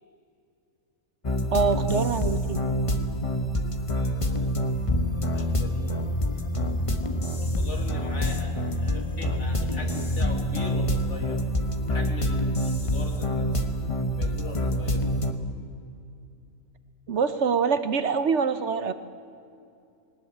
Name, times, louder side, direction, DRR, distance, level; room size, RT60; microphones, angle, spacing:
sound 1, 1.2-15.3, equal, 25° left, 1.1 m, -26 dB
voice 1, 1.5-2.6 17.1-18.9, right 5 dB, 60° right, 12 dB, 1.0 m, -25 dB
voice 2, 3.9-6.4 7.6-11.4 11.9-13.6 14.1-15.0, left 1 dB, 55° left, 2 dB, 3.0 m, -41 dB
19.5 x 19.5 x 8.8 m, 2.6 s
omnidirectional pair, 1.5 m